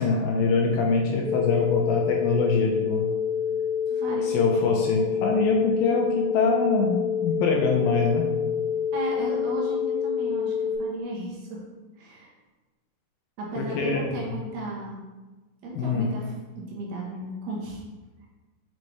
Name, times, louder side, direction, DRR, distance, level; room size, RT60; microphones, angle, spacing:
voice 1, 0.0-3.1 4.2-8.3 13.6-14.3 15.8-16.1, left 4 dB, 80° left, 0 dB, 2.3 m, -24 dB
sound 1, 1.2-10.7, left 8 dB, 55° right, 1.6 m, -27 dB
voice 2, 3.9-4.4 8.9-11.7 12.0-12.3 13.4-15.0 15.6-17.8, right 2 dB, 75° right, -3 dB, 3.0 m, -35 dB
6.6 x 5.4 x 3.1 m, 1.2 s
omnidirectional pair, 4.6 m